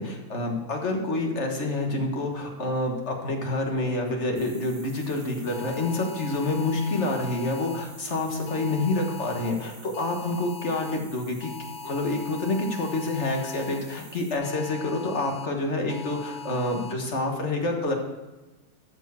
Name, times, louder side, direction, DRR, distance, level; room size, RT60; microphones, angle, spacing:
voice 1, 0.0-11.5 11.8-17.9, left 2 dB, 50° left, 2 dB, 1.8 m, -28 dB
sound 1, 4.4-14.4, right 3 dB, 60° right, 2.3 m, -49 dB
sound 2, 5.5-7.8 8.5-9.5 9.9-11.0 11.4-13.8 14.4-15.5 15.9-16.9, left 5 dB, 85° left, 1.3 m, -41 dB
13.0 x 4.5 x 6.9 m, 1.1 s
omnidirectional pair, 1.5 m